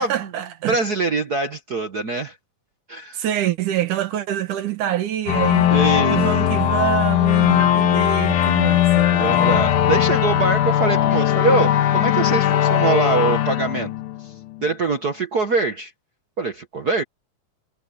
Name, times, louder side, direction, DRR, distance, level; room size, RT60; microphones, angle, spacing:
voice 1, 0.0-0.8 3.1-5.7 6.1-9.6, right 12 dB, 90° right, 3.1 m, -26 dB
voice 2, 0.7-2.4 2.9-3.2 5.7-6.2 9.2-13.9 14.2-14.3 14.6-15.9 16.4-17.0, right 3 dB, 50° right, 1.2 m, -23 dB
sound 1, 5.3-14.6, left 11 dB, 80° left, 2.8 m, -19 dB
omnidirectional pair, 3.5 m